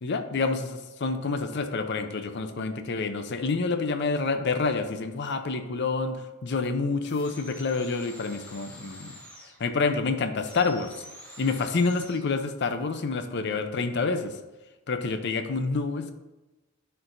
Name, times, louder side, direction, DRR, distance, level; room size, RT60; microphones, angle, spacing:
voice 1, 0.0-9.2 9.6-11.0 11.4-14.4 14.9-16.1, left 4 dB, 50° left, 8 dB, 0.5 m, -28 dB
sound 1, 7.0-9.6 10.4-12.3, equal, 5° left, 1.1 m, -47 dB
10.5 x 4.5 x 2.6 m, 1.1 s
head